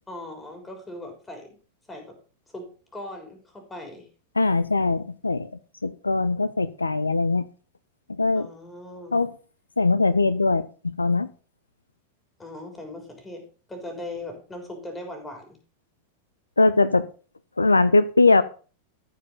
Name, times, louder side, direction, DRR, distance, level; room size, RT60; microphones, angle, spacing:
voice 1, 0.1-1.6 1.9-2.2 2.5-2.7 2.9-4.1 8.3-9.2 12.4-15.5, left 1 dB, 15° left, 3 dB, 3.6 m, -39 dB
voice 2, 4.4-5.5 5.8-7.5 8.2-8.5 9.1-9.3 9.8-11.3 16.6-17.1 17.6-18.4, left 3 dB, 80° left, 16 dB, 0.5 m, -21 dB
14.0 x 5.0 x 5.3 m, 0.38 s
figure-of-eight pair, 90°, 0 cm